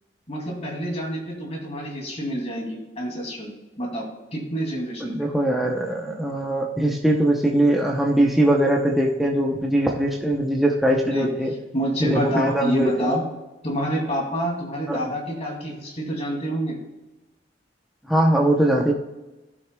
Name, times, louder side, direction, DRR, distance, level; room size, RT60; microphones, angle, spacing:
voice 1, 0.3-3.5 3.8-5.1 11.1-11.3 11.7-13.2 13.6-16.8, right 1 dB, 35° left, -1 dB, 2.4 m, -27 dB
voice 2, 5.0-11.5 12.0-13.1 14.9-15.1 18.1-18.9, right 1 dB, ahead, -1 dB, 0.7 m, -21 dB
16.0 x 6.3 x 2.2 m, 1.1 s
head